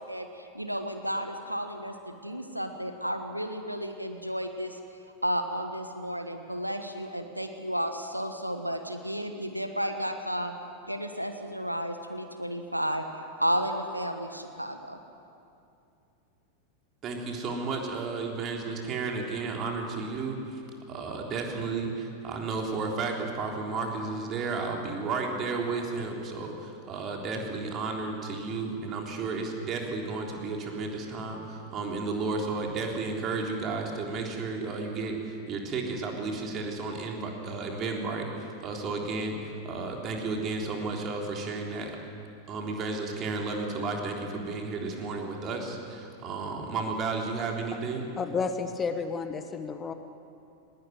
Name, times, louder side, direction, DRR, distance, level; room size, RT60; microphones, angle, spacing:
voice 1, 0.0-4.8 5.2-10.5 10.9-15.0, equal, 90° right, 7 dB, 1.3 m, -32 dB
voice 2, 17.0-20.6 20.9-41.9 42.5-48.0, right 3 dB, 30° right, 1 dB, 3.6 m, -33 dB
voice 3, 48.2-49.9, left 5 dB, 20° left, 9 dB, 1.2 m, -31 dB
20.0 x 18.5 x 9.3 m, 2.6 s
figure-of-eight pair, 90°, 0 cm